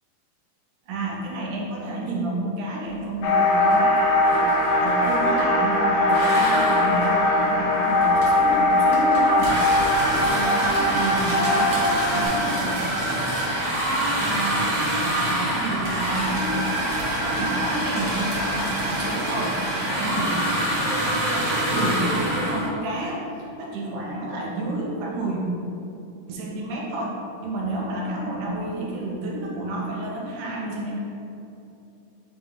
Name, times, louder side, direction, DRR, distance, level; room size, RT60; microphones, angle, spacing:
voice 1, 0.9-9.6 10.0-12.9 14.1-25.4 26.3-31.0, right 1 dB, 80° right, -2 dB, 2.2 m, -30 dB
sound 1, 3.2-12.2, left 2 dB, 75° left, 1.5 m, -20 dB
sound 2, 3.7-4.0 4.2-5.5 6.1-22.7, right 1 dB, 45° right, 1.5 m, -26 dB
8.9 x 3.8 x 3.6 m, 2.7 s
omnidirectional pair, 3.8 m